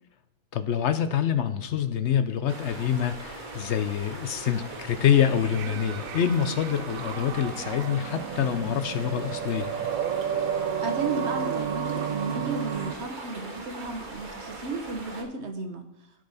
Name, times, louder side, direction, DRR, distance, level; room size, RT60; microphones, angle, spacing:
voice 1, 0.5-9.7, left 9 dB, 65° left, 10 dB, 0.8 m, -26 dB
sound 1, 2.5-15.2, right 2 dB, 35° right, 1.5 m, -40 dB
sound 2, 4.4-13.0, right 8 dB, 85° right, 1.0 m, -32 dB
voice 2, 10.8-15.8, right 3 dB, 55° right, 5 dB, 1.4 m, -34 dB
15.5 x 5.5 x 4.0 m, 0.86 s
omnidirectional pair, 1.4 m